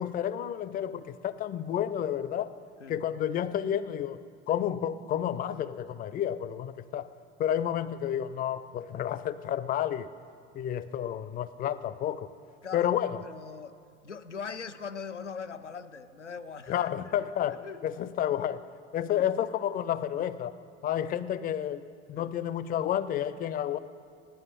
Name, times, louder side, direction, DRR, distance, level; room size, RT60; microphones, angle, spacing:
voice 1, 0.0-2.5 2.9-7.1 7.4-10.1 10.5-12.3 12.7-13.2 16.7-18.6 18.9-20.5 20.8-23.8, left 10 dB, 25° left, 16 dB, 0.5 m, -30 dB
voice 2, 13.2-13.8 14.0-16.9 17.5-17.8 19.1-19.2 22.2-22.3, left 6 dB, 85° left, 10 dB, 0.6 m, -41 dB
16.0 x 11.5 x 5.2 m, 2.3 s
figure-of-eight pair, 65°, 35 cm